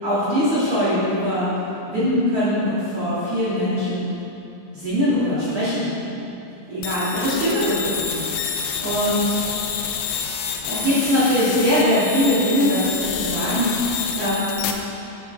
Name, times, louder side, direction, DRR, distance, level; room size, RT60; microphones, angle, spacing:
voice 1, 0.0-1.5 1.9-4.1 4.7-6.1 6.7-9.4 10.6-14.5, equal, 40° right, -12 dB, 3.6 m, -22 dB
sound 1, 6.8-14.7, left 7 dB, 80° left, 2.8 m, -28 dB
11.0 x 9.3 x 4.9 m, 2.9 s
omnidirectional pair, 4.8 m